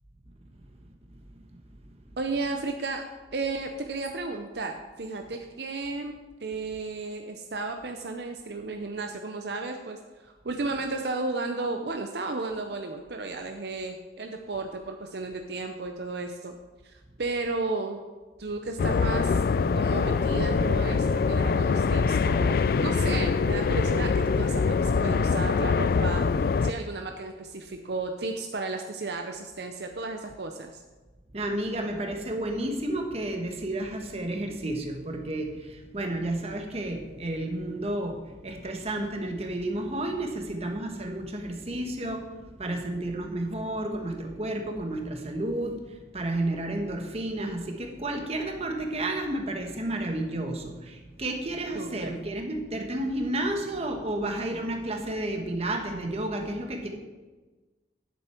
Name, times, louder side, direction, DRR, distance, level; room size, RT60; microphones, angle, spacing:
voice 1, 2.2-3.0 3.3-6.1 6.4-16.6 16.8-18.0 18.4-19.4 19.7-26.3 26.6-30.8 51.7-52.1, right 3 dB, 65° right, 4 dB, 0.7 m, -33 dB
sound 1, 18.8-26.7, left 5 dB, 55° left, 0.3 m, -24 dB
voice 2, 31.3-42.2 42.6-56.9, right 1 dB, 35° right, 3 dB, 1.3 m, -31 dB
10.5 x 7.8 x 4.4 m, 1.3 s
head